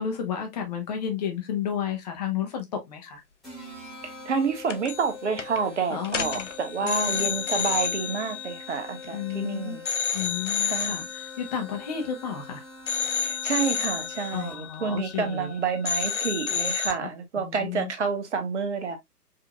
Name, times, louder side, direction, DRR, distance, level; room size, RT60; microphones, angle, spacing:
voice 1, 0.0-3.2 5.9-6.5 6.8-7.4 9.1-9.8 10.1-12.6 14.3-15.6 17.0-17.1 17.4-17.9, left 8 dB, 25° left, 0.9 m, -32 dB
sound 1, 3.4-14.8, left 4 dB, ahead, 1.0 m, -44 dB
voice 2, 4.3-9.8 10.6-11.0 13.2-19.0, right 5 dB, 45° right, 1.0 m, -29 dB
sound 2, 4.7-5.1 5.4-5.6 6.0-9.4 9.9-12.5 12.9-15.5 15.8-16.9, left 8 dB, 50° left, 0.5 m, -30 dB
4.9 x 2.8 x 2.2 m
figure-of-eight pair, 130°, 49 cm